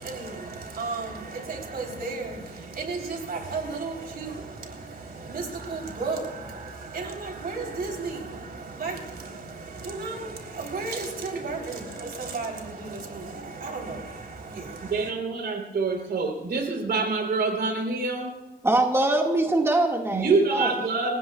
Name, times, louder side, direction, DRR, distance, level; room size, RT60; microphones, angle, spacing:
voice 1, 0.0-15.1, right 3 dB, 70° right, 1 dB, 3.6 m, -34 dB
voice 2, 14.8-18.3 20.1-21.2, right 3 dB, 85° right, 2 dB, 3.6 m, -26 dB
voice 3, 18.6-20.7, right 2 dB, 15° right, 1 dB, 1.8 m, -23 dB
30.0 x 16.0 x 2.4 m, 1.2 s
wide cardioid pair, 135°, 17 cm